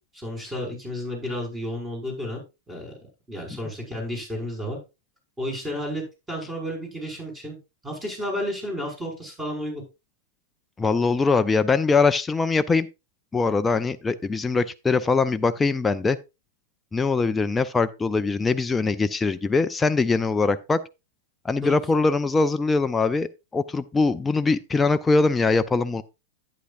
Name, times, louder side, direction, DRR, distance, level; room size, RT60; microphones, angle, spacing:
voice 1, 0.1-2.4 2.7-2.9 3.3-4.8 5.4-6.0 6.3-7.6 7.8-9.8 21.6-21.8, equal, 15° right, 6.1 m, -32 dB
voice 2, 10.8-12.9 13.3-16.2 16.9-20.8 21.4-26.0, left 4 dB, 15° left, 0.5 m, -22 dB
11.5 x 9.4 x 2.6 m
figure-of-eight pair, 95°, 0 cm